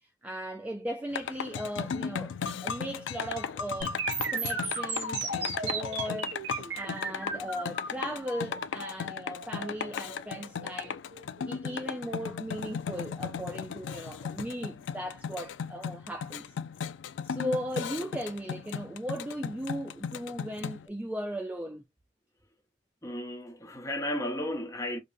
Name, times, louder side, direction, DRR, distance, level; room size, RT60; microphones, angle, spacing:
voice 1, 0.2-2.3 2.6-4.0 4.3-11.0 11.5-16.5 17.2-21.8, equal, 10° right, 0.3 m, -37 dB
sound 1, 1.1-20.9, left 6 dB, 80° left, 0.4 m, -36 dB
sound 2, 3.8-11.8, right 3 dB, 85° right, 2.5 m, -36 dB
voice 2, 23.0-25.0, left 1 dB, 15° left, 0.9 m, -34 dB
4.9 x 2.2 x 2.6 m
head